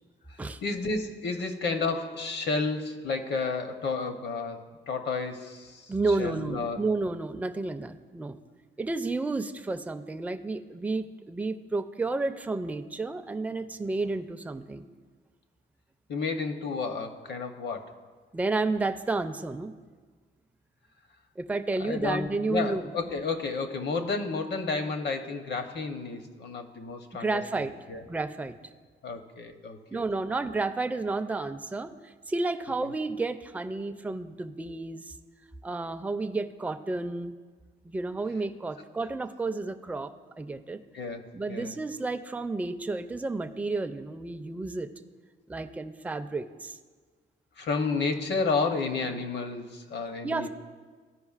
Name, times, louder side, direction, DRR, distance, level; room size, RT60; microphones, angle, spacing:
voice 1, 0.3-6.8 16.1-17.9 21.8-27.4 27.9-28.0 29.0-30.1 32.8-32.9 40.9-41.7 47.6-50.5, left 4 dB, 60° left, 7 dB, 0.9 m, -31 dB
voice 2, 5.9-8.4 8.8-14.9 18.3-19.7 21.4-22.9 27.1-27.7 28.0-28.6 29.9-35.1 35.6-37.4 37.8-40.8 41.3-44.9 45.5-46.8 50.2-50.5, right 3 dB, 5° right, 8 dB, 0.4 m, -31 dB
14.0 x 5.0 x 2.4 m, 1.5 s
cardioid pair, 90°, 20 cm